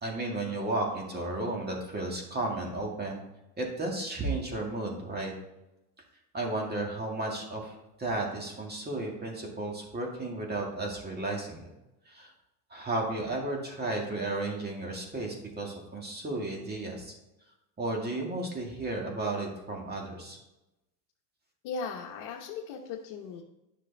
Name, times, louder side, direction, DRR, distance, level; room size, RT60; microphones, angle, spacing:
voice 1, 0.0-3.2 3.6-5.3 6.3-7.7 8.0-11.7 12.1-12.3 12.7-17.1 17.8-20.4, right 2 dB, 20° right, 0 dB, 2.1 m, -33 dB
voice 2, 21.6-23.4, left 5 dB, 60° left, -1 dB, 1.2 m, -37 dB
9.9 x 6.3 x 3.5 m, 0.94 s
supercardioid pair, 115°, 49 cm